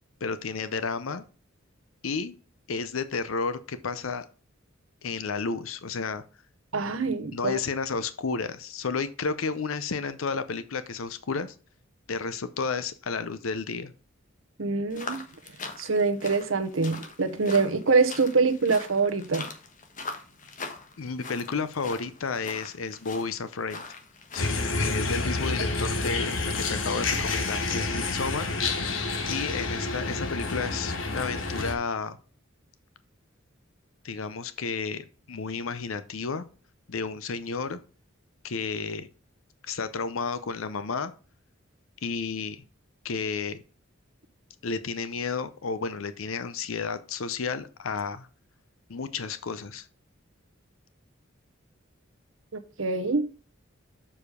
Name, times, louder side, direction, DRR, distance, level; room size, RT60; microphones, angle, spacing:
voice 1, 0.2-1.2 2.0-2.3 2.7-4.2 5.0-6.2 7.3-11.5 12.1-13.9 21.0-23.8 24.3-28.5 29.3-32.2 34.0-36.4 36.9-37.8 38.4-39.1 39.6-41.1 42.0-42.6 43.0-43.6 44.6-48.3 48.9-49.9, left 4 dB, 90° left, 0.7 m, -32 dB
voice 2, 6.7-7.6 14.6-15.2 15.8-19.5 52.8-53.2, right 4 dB, 75° right, 1.0 m, -24 dB
sound 1, 14.9-24.9, left 4 dB, 40° left, 1.2 m, -42 dB
sound 2, 24.4-31.7, left 3 dB, 75° left, 1.4 m, -29 dB
7.2 x 4.9 x 5.0 m
head